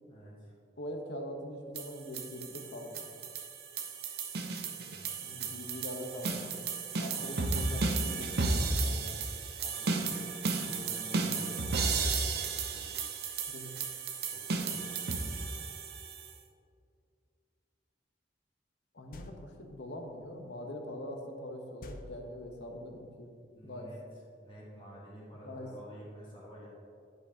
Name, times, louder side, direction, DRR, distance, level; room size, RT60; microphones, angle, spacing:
voice 1, 0.1-0.5 4.9-5.8 9.6-9.9 10.6-12.9 14.3-14.7 23.5-24.0 24.4-26.7, equal, 30° left, -6 dB, 1.4 m, -50 dB
voice 2, 0.8-3.1 5.2-9.3 13.5-13.7 18.9-23.3 23.6-23.9 25.4-25.7, left 1 dB, 85° left, 3 dB, 0.9 m, -43 dB
sound 1, 1.8-16.3, right 4 dB, 60° right, 0.6 m, -34 dB
sound 2, 19.1-19.8 21.8-22.8, left 2 dB, 50° left, 0.4 m, -49 dB
10.5 x 5.3 x 2.8 m, 2.4 s
head